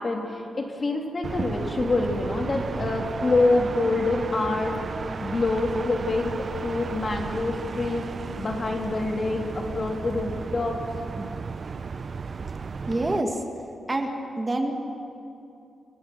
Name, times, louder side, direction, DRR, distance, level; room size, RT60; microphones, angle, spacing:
voice 1, 0.0-4.8 5.2-8.1 8.4-10.8, left 2 dB, 40° left, 2 dB, 2.9 m, -26 dB
sound 1, 1.2-13.2, right 5 dB, 45° right, 0.5 m, -34 dB
voice 2, 12.9-13.4 13.9-14.7, right 2 dB, 25° right, 3 dB, 1.9 m, -27 dB
28.5 x 17.0 x 6.2 m, 2.6 s
cardioid pair, 105°, 0 cm